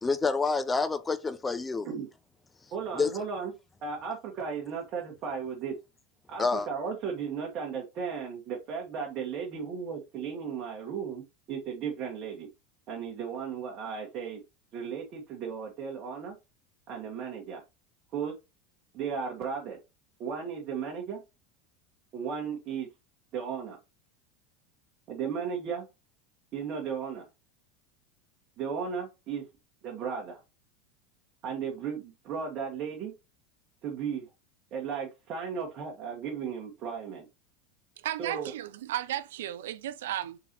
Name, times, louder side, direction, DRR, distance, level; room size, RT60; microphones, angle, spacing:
voice 1, 0.0-1.9 3.0-3.1 6.4-6.7, left 4 dB, 20° left, 0.5 m, -28 dB
voice 2, 2.7-3.5 3.8-5.7 6.3-12.5 12.9-14.4 14.7-16.3 16.9-17.6 18.1-18.3 18.9-19.8 20.2-21.2 22.1-22.9 23.3-23.8 25.1-25.9 26.5-27.2 28.6-29.4 29.8-30.4 31.4-33.1 33.8-34.3 34.7-37.2 38.2-38.5, right 6 dB, 45° right, 1.3 m, -35 dB
voice 3, 38.0-40.4, right 12 dB, 75° right, 0.4 m, -34 dB
3.9 x 3.9 x 2.9 m
hypercardioid pair, 85°, 0 cm